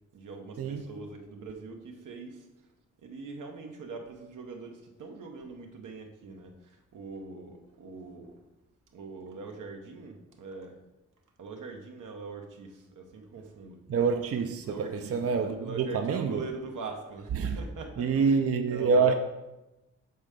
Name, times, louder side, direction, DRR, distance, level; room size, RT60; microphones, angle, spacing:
voice 1, 0.1-2.5 3.0-8.4 8.9-10.8 11.4-13.8 14.6-19.1, right 4 dB, 85° right, 0.9 m, -42 dB
voice 2, 13.9-16.4 17.4-17.6 18.0-19.1, right 5 dB, 50° right, 0.5 m, -26 dB
6.8 x 3.3 x 5.0 m
cardioid pair, 75°, 30 cm